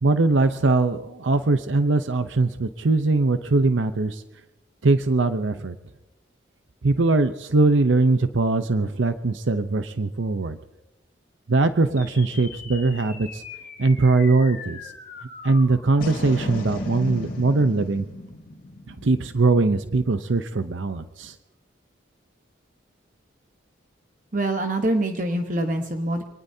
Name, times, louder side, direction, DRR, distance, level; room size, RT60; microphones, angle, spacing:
voice 1, 0.0-4.2 4.8-5.7 6.8-10.6 11.5-13.4 13.8-14.8 15.4-18.1 18.9-21.3, right 3 dB, 80° right, 10 dB, 0.7 m, -21 dB
sound 1, 12.0-20.5, left 2 dB, 45° left, 3.1 m, -37 dB
voice 2, 24.3-26.2, right 1 dB, 40° right, 5 dB, 1.1 m, -24 dB
26.0 x 19.0 x 2.8 m, 0.91 s
head